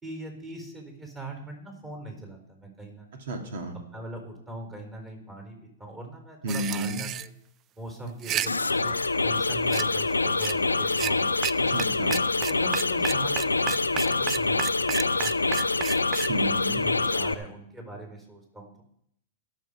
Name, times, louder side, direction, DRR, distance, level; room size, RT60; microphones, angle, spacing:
voice 1, 0.0-3.2 3.9-7.3 7.7-11.9 12.5-14.9 15.2-15.7 16.7-18.8, right 2 dB, 15° right, 2 dB, 4.2 m, -41 dB
voice 2, 3.3-3.8 6.4-7.1 11.6-12.3 16.3-16.8, right 1 dB, 60° right, 4 dB, 2.6 m, -32 dB
sound 1, 6.5-7.3 8.1-8.5 9.7-9.8 10.4-10.5 10.9-11.1 11.4-11.5 11.8-11.9 12.1-16.3, right 11 dB, 30° right, 0.3 m, -31 dB
sound 2, 8.5-17.3, left 3 dB, 90° left, 0.6 m, -25 dB
18.0 x 6.8 x 5.1 m, 0.73 s
figure-of-eight pair, 105°, 0 cm